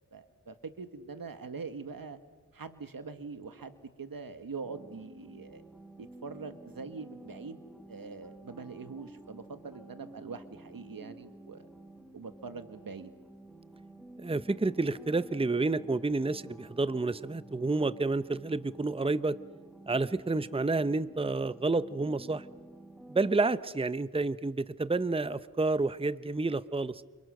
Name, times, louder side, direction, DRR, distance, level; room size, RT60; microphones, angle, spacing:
voice 1, 0.0-2.2 2.5-5.6 6.0-7.6 7.9-11.7 12.1-13.1, right 4 dB, 90° right, 9 dB, 1.8 m, -43 dB
sound 1, 4.6-23.4, right 1 dB, ahead, 2.3 m, -51 dB
voice 2, 14.2-19.4 19.9-22.4 23.1-27.0, right 3 dB, 15° right, 15 dB, 0.7 m, -29 dB
29.0 x 29.0 x 6.5 m, 1.3 s
wide cardioid pair, 60°, 34 cm